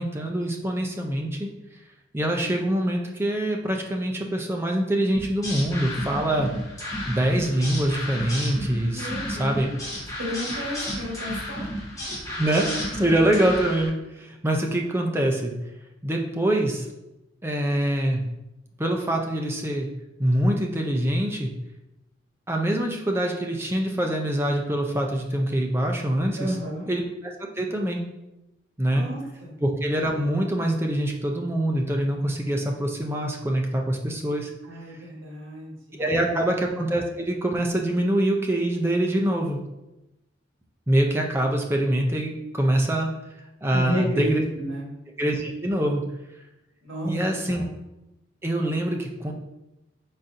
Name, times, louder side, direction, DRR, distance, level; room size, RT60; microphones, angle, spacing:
voice 1, 0.0-1.5 2.1-6.5 7.1-9.7 12.4-15.5 16.0-16.9 17.4-18.2 18.8-19.9 20.2-21.5 22.5-26.6 26.9-27.3 27.6-28.0 28.8-29.0 29.6-34.5 36.0-39.6 40.9-43.1 43.6-44.4 45.2-46.0 47.0-47.6 48.4-49.3, right 1 dB, 10° right, 1 dB, 0.5 m, -24 dB
sound 1, 5.1-13.9, left 1 dB, 15° left, 1.0 m, -33 dB
voice 2, 8.9-9.7 10.2-11.7 26.4-26.9 28.9-29.6 34.6-36.5 43.7-44.9 46.8-47.1 47.5-47.7, equal, 75° right, -2 dB, 1.4 m, -32 dB
4.7 x 4.1 x 2.6 m, 0.94 s
head